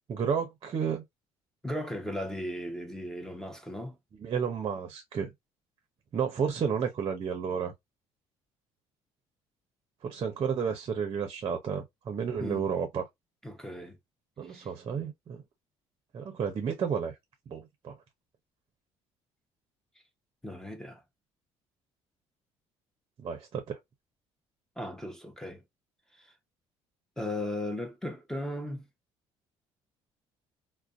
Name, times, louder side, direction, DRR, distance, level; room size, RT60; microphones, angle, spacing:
voice 1, 0.1-1.0 4.2-5.3 6.1-7.7 10.0-13.1 14.4-15.4 16.1-17.1 17.5-18.0 23.2-23.8, right 6 dB, 40° right, 0.6 m, -31 dB
voice 2, 1.6-4.0 12.4-12.7 13.4-14.0 14.5-14.7 20.4-21.0 24.8-25.6 27.2-28.9, left 1 dB, 5° left, 0.7 m, -36 dB
2.5 x 2.1 x 2.4 m
cardioid pair, 100°, 11 cm